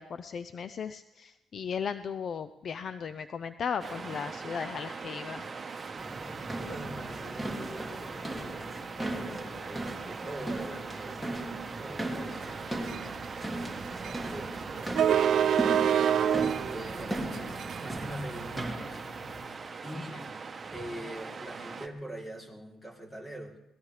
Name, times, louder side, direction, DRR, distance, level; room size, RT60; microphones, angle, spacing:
voice 1, 0.0-5.5 20.1-20.2, left 6 dB, 55° left, 12 dB, 0.5 m, -36 dB
Waves surf, 3.8-21.9, right 4 dB, 35° right, 1.1 m, -41 dB
bm-Footsteps Stairwell, 6.0-19.4, right 1 dB, 5° left, 2.5 m, -38 dB
voice 2, 6.7-13.7 14.0-15.9 16.7-19.0 19.4-20.3 20.7-23.6, right 1 dB, 20° left, 0 dB, 3.3 m, -44 dB
sound 1, 12.5-18.7, right 9 dB, 65° right, 0.5 m, -28 dB
23.5 x 18.5 x 3.3 m, 0.88 s
cardioid pair, 90°, 0 cm